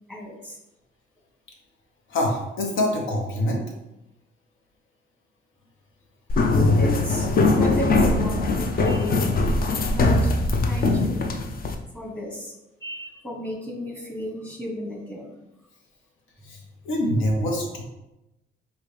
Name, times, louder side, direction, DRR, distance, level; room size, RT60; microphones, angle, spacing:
voice 1, 0.1-0.6 6.8-10.3 10.7-11.3 11.9-12.5 12.8-15.4 17.4-17.5, equal, 5° left, 0 dB, 1.2 m, -34 dB
voice 2, 2.1-3.6 16.4-16.6 16.8-17.8, left 1 dB, 80° left, 0 dB, 1.1 m, -25 dB
sound 1, 6.3-11.7, left 2 dB, 50° left, 0.6 m, -21 dB
4.9 x 2.7 x 3.3 m, 0.93 s
cardioid pair, 90°, 20 cm